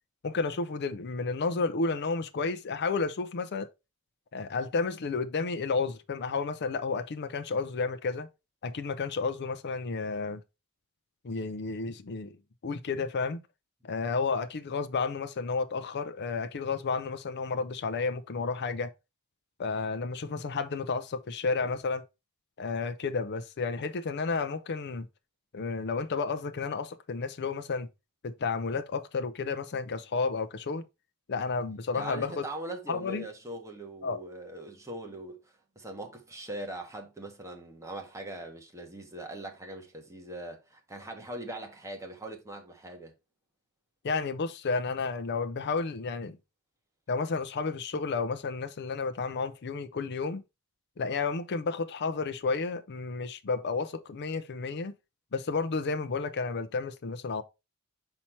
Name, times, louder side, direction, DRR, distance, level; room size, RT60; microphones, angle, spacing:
voice 1, 0.2-3.7 4.3-8.3 8.6-10.4 11.2-12.4 12.6-13.4 13.8-18.9 19.6-22.0 22.6-25.1 25.5-27.9 28.2-30.8 31.3-32.4 32.9-33.2 34.0-34.2 44.0-46.4 47.1-50.4 51.0-54.9 55.3-57.4, left 4 dB, 50° left, 0.5 m, -31 dB
voice 2, 31.9-43.1, right 1 dB, 15° right, 1.4 m, -41 dB
5.8 x 4.4 x 4.3 m
head